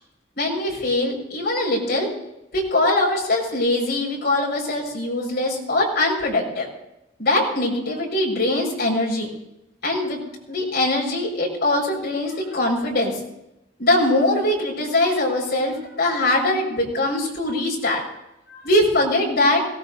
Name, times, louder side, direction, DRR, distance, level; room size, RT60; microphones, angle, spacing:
voice 1, 0.3-2.1 2.5-6.7 7.2-9.3 9.8-13.2 13.8-18.0 18.5-19.6, left 1 dB, 55° left, -3 dB, 5.7 m, -22 dB
22.0 x 18.0 x 2.8 m, 0.88 s
head